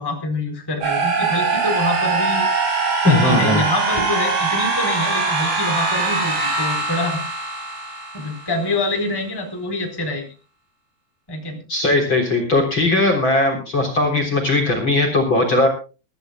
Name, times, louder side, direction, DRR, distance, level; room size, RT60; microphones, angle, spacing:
voice 1, 0.0-2.5 3.0-7.2 8.1-10.3 11.3-11.6, left 2 dB, 5° left, 3 dB, 3.7 m, -25 dB
sound 1, 0.8-8.7, right 4 dB, 65° right, 7.6 m, -22 dB
voice 2, 3.0-3.6 11.7-15.7, left 2 dB, 30° left, 4 dB, 4.0 m, -18 dB
23.5 x 14.0 x 2.3 m, 0.33 s
omnidirectional pair, 4.6 m